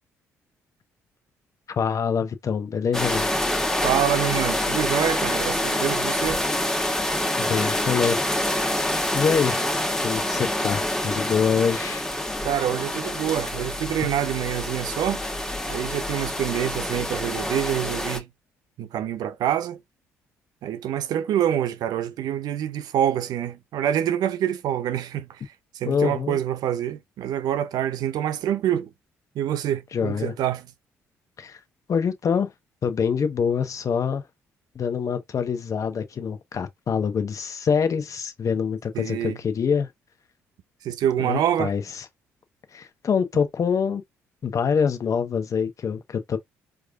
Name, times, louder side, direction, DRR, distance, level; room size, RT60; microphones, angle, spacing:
voice 1, 1.8-3.3 7.4-8.2 9.1-9.7 10.0-12.0 25.9-26.4 29.9-30.3 31.4-31.6 31.9-32.5 32.8-34.2 34.7-39.9 41.2-42.0 42.7-44.0 44.4-46.4, left 6 dB, 45° left, 1.0 m, -25 dB
sound 1, 2.9-18.2, left 1 dB, 5° left, 1.2 m, -26 dB
voice 2, 3.8-6.4 12.4-15.2 15.7-18.3 18.8-19.8 20.6-28.9 29.3-30.7 38.9-39.4 40.8-41.7, right 10 dB, 65° right, 0.6 m, -26 dB
4.6 x 2.5 x 2.4 m
hypercardioid pair, 50°, 7 cm